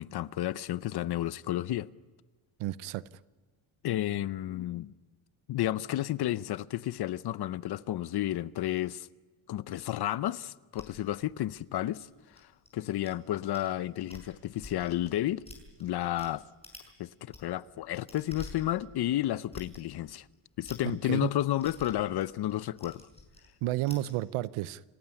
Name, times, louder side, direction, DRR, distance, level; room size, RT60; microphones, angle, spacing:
voice 1, 0.0-1.9 3.8-4.9 5.5-9.1 9.5-12.1 12.7-15.4 15.8-16.4 17.0-20.2 20.6-23.1, left 13 dB, 50° left, 0.7 m, -31 dB
voice 2, 2.6-3.1 20.8-21.3 23.6-24.8, right 16 dB, 85° right, 0.9 m, -32 dB
sound 1, 10.8-13.1 13.5-13.7 14.0-16.3 16.6-16.9 17.2-24.1, left 2 dB, 10° left, 5.9 m, -50 dB
28.5 x 15.0 x 9.7 m
cardioid pair, 145°, 50 cm